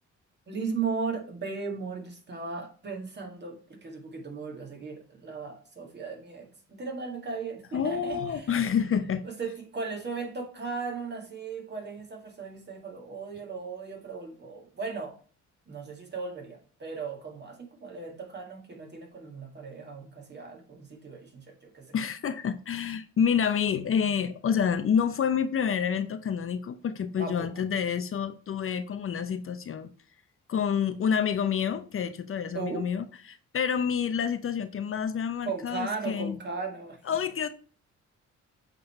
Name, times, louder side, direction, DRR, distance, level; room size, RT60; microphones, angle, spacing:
voice 1, 0.5-8.6 9.2-15.2 15.7-22.0 27.2-27.5 32.5-32.9 35.4-37.0, right 4 dB, 35° right, 2.0 m, -37 dB
voice 2, 7.7-9.2 21.9-29.9 30.5-36.4 37.1-37.5, left 7 dB, 45° left, 0.7 m, -28 dB
7.8 x 3.8 x 4.3 m
cardioid pair, 90°, 30 cm